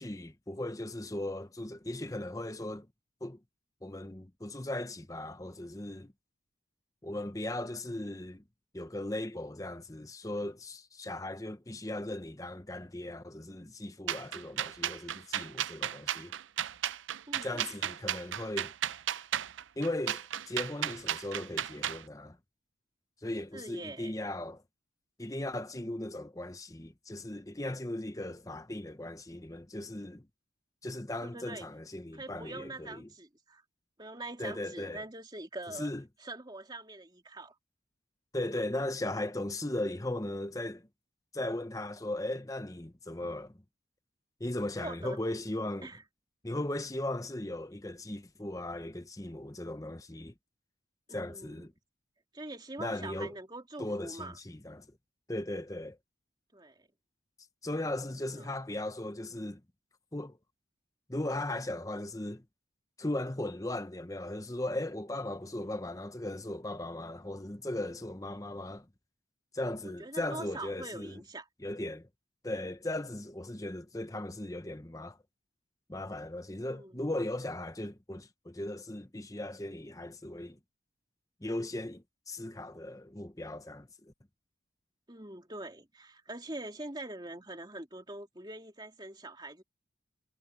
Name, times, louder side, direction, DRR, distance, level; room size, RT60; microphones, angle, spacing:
voice 1, 0.0-2.9 3.2-3.4 3.8-6.1 7.0-8.4 8.7-16.3 17.4-18.7 19.8-22.4 23.2-24.6 25.2-30.3 30.8-33.1 34.4-35.0 35.8-36.0 38.3-40.9 41.3-43.6 44.4-45.9 46.4-50.3 51.1-51.7 52.8-53.3 53.8-54.9 55.3-56.0 57.6-59.6 60.1-60.4 61.1-62.4 63.0-68.9 69.5-71.2 71.6-72.1 72.4-75.2 75.9-80.6 81.4-84.1, left 1 dB, 15° left, 0.9 m, -37 dB
sound 1, 14.1-22.0, right 11 dB, 80° right, 0.5 m, -34 dB
voice 2, 17.3-17.6 23.5-24.1 31.2-31.7 32.1-33.6 34.0-35.9 36.2-37.5 44.8-45.2 45.8-46.0 51.1-51.7 52.3-54.4 56.5-56.9 58.4-58.5 69.8-71.5 76.7-77.0 85.1-89.6, right 2 dB, 20° right, 2.9 m, -44 dB
head